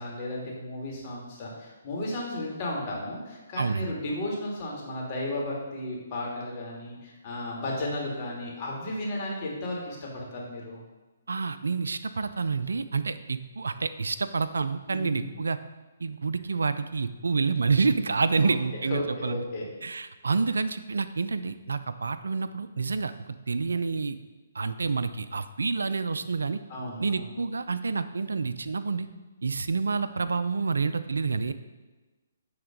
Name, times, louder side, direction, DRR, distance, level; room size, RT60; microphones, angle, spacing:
voice 1, 0.0-10.8 14.9-15.3 18.3-19.7 26.7-27.3, left 1 dB, 35° left, -3 dB, 2.3 m, -34 dB
voice 2, 3.6-3.9 11.3-15.6 16.0-19.4 19.8-23.1 23.5-24.2 24.6-26.6 27.0-29.1 29.4-31.5, right 4 dB, 80° right, 12 dB, 0.4 m, -28 dB
8.7 x 3.7 x 5.2 m, 1.2 s
hypercardioid pair, 140°, 0 cm